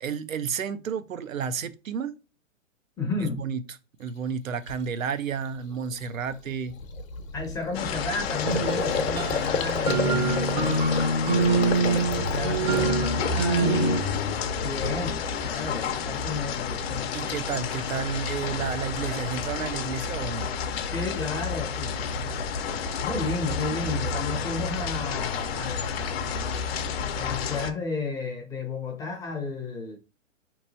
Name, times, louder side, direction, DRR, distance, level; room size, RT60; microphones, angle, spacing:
voice 1, 0.0-2.1 3.2-3.6 4.0-6.8 10.1-10.4 17.1-20.5, right 6 dB, 80° right, 0.6 m, -31 dB
voice 2, 3.0-3.4 7.3-13.8 14.6-17.1 20.9-22.3 23.0-26.7 27.1-30.0, left 4 dB, 10° left, 0.5 m, -33 dB
Gurgling, 4.1-4.2 4.7-4.9 5.3-5.5 5.7-13.8 14.1-14.7, left 5 dB, 80° left, 0.8 m, -32 dB
sound 1, 7.7-27.7, left 5 dB, 50° left, 0.6 m, -30 dB
sound 2, 8.4-14.0, right 3 dB, 35° right, 0.7 m, -25 dB
4.4 x 3.0 x 2.6 m
hypercardioid pair, 125°, 39 cm